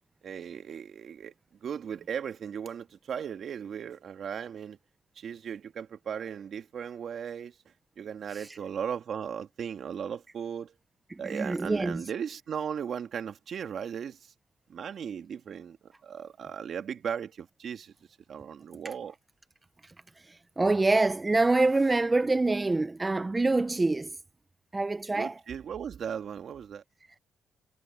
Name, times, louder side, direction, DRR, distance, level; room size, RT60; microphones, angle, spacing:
voice 1, 0.2-1.3 1.6-4.8 5.2-7.6 8.0-10.7 11.2-14.3 14.7-17.9 18.3-19.2 25.1-26.8, right 8 dB, 60° right, 2.2 m, -37 dB
voice 2, 11.1-12.0 19.8-19.9 20.2-24.2 24.7-25.3, right 2 dB, 20° right, 0.5 m, -26 dB
cardioid pair, 90°, 0 cm